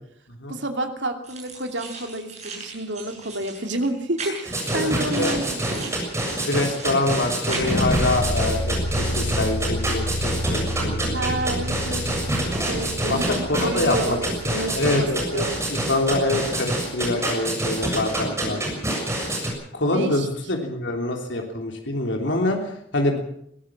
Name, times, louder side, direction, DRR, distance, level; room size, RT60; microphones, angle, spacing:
voice 1, 0.5-5.7 11.1-12.1 12.5-15.5 19.9-20.3, right 1 dB, 70° right, 5 dB, 2.8 m, -29 dB
sound 1, 1.2-7.9, right 4 dB, 35° right, 7.9 m, -39 dB
sound 2, 4.4-19.5, right 1 dB, 15° right, 7.0 m, -26 dB
voice 2, 4.7-5.3 6.4-11.2 13.1-14.2 14.4-18.6 19.7-23.2, left 2 dB, 70° left, 2 dB, 3.4 m, -25 dB
sound 3, 7.6-16.6, left 1 dB, 55° left, 1.0 m, -30 dB
21.5 x 16.5 x 7.4 m, 0.69 s
head